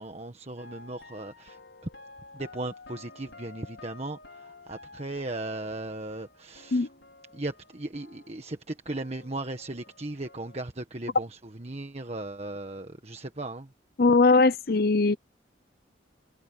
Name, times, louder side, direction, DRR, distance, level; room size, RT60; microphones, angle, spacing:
voice 1, 0.0-1.6 2.3-6.9 7.3-13.7, right 2 dB, 35° right, 1.5 m, -37 dB
sound 1, 0.6-8.6 8.8-10.6, left 3 dB, 80° left, 5.7 m, -51 dB
voice 2, 14.0-15.2, left 3 dB, 55° left, 0.6 m, -20 dB
head